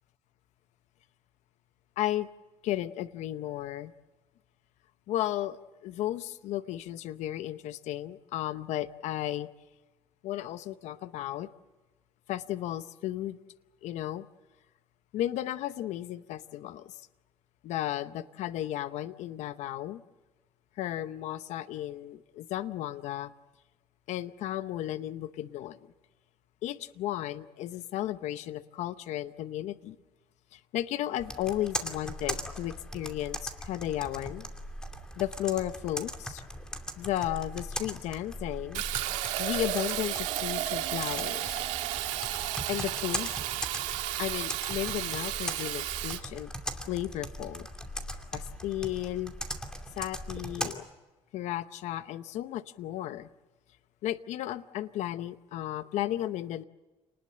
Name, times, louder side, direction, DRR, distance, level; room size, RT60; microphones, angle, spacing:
voice 1, 2.0-2.3 2.6-3.9 5.1-9.5 10.2-11.5 12.3-13.4 13.8-14.3 15.1-17.1 17.6-20.0 20.8-23.3 24.1-25.8 26.6-30.0 30.5-34.5 35.2-36.4 37.0-38.8 39.4-41.7 42.7-43.3 44.2-46.5 46.9-47.7 48.3-49.3 50.0-50.8 51.3-53.3 54.0-56.6, left 13 dB, 75° left, 13 dB, 0.8 m, -34 dB
Computer keyboard, 31.2-50.7, equal, 5° left, 2.6 m, -40 dB
Fill (with liquid), 38.7-46.2, right 14 dB, 85° right, 1.7 m, -33 dB
29.0 x 20.0 x 7.7 m, 1.2 s
cardioid pair, 115°, 12 cm